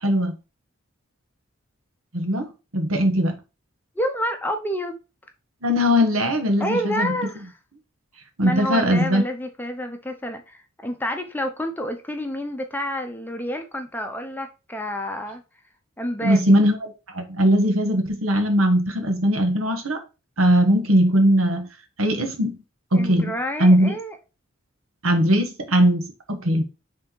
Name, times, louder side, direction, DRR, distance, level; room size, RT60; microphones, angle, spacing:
voice 1, 0.0-0.4 2.1-3.3 5.6-7.2 8.4-9.2 16.2-16.8 17.1-20.0 20.4-21.7 22.0-22.6 22.9-23.3 23.6-23.9 25.0-26.6, equal, 80° right, 1.5 m, -20 dB
voice 2, 3.9-5.0 6.6-7.5 8.4-15.4 16.0-16.6 22.9-24.1, equal, 10° left, 0.7 m, -29 dB
6.4 x 3.7 x 4.6 m
head